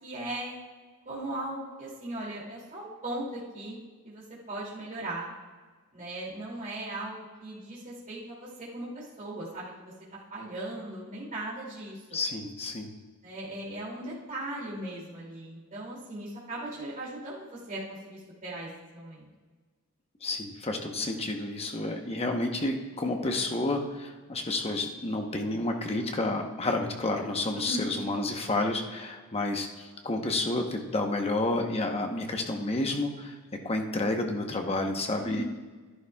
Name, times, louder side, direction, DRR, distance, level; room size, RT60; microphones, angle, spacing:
voice 1, 0.0-0.6 1.1-3.8 4.0-5.3 5.9-9.9 10.3-12.2 13.2-19.3 27.6-28.0 35.2-35.4, right 1 dB, 35° right, -6 dB, 2.6 m, -38 dB
voice 2, 12.1-12.9 20.2-33.4 33.6-35.4, left 2 dB, 30° left, 3 dB, 0.9 m, -30 dB
12.5 x 11.0 x 2.3 m, 1.4 s
head